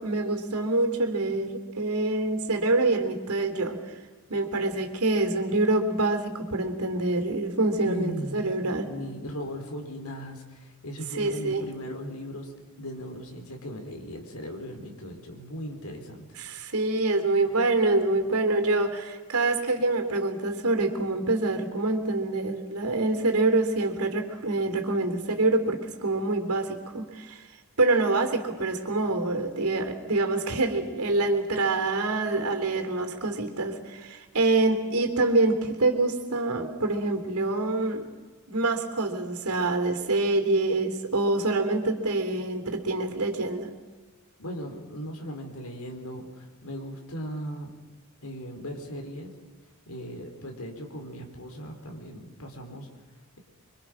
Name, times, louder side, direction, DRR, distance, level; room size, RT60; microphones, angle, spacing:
voice 1, 0.0-3.8 4.3-8.9 11.1-11.6 16.4-27.4 27.8-38.0 38.5-43.7, right 2 dB, 80° right, 6 dB, 3.3 m, -26 dB
voice 2, 7.8-8.4 8.8-12.5 12.8-16.3 44.4-47.7 48.2-49.3 49.9-52.9, equal, 75° left, 4 dB, 4.4 m, -38 dB
25.5 x 24.5 x 6.3 m, 1.4 s
head